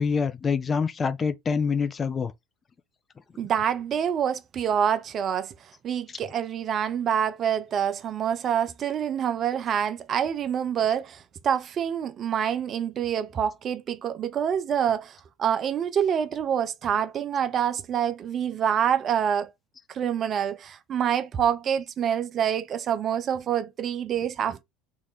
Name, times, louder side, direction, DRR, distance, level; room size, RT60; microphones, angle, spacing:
voice 1, 0.0-2.3, left 5 dB, 30° left, 0.5 m, -26 dB
voice 2, 3.4-5.5 5.8-19.5 19.9-24.6, right 8 dB, 45° right, 0.5 m, -26 dB
2.8 x 2.4 x 3.5 m
hypercardioid pair, 80°, 0 cm